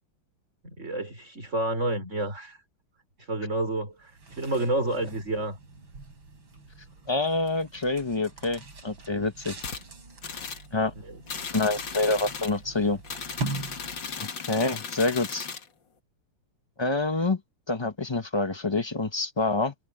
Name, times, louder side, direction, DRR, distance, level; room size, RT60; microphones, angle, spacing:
voice 1, 0.6-2.6 3.2-5.6 11.0-11.2, right 2 dB, 35° right, 5.3 m, -30 dB
sound 1, 4.0-14.3, right 3 dB, 65° right, 5.2 m, -42 dB
voice 2, 7.1-9.6 10.7-10.9 11.5-13.0 14.2-15.5 16.8-17.4 17.7-19.7, left 3 dB, 25° left, 0.6 m, -27 dB
sound 2, 9.6-9.8 10.2-10.7 11.3-12.6 13.0-15.7, left 6 dB, 60° left, 2.6 m, -36 dB
omnidirectional pair, 2.3 m